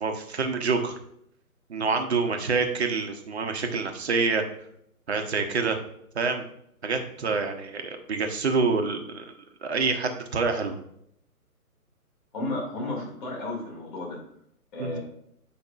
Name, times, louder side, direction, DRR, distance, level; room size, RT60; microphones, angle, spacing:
voice 1, 0.0-0.9 1.7-4.4 5.1-5.8 6.1-6.4 6.8-9.3 9.6-10.7 14.8-14.9, right 4 dB, 45° right, 5 dB, 0.9 m, -27 dB
voice 2, 12.3-14.2 14.7-15.0, left 2 dB, 30° left, -2 dB, 2.3 m, -33 dB
8.1 x 5.1 x 2.4 m, 0.71 s
figure-of-eight pair, 140°, 46 cm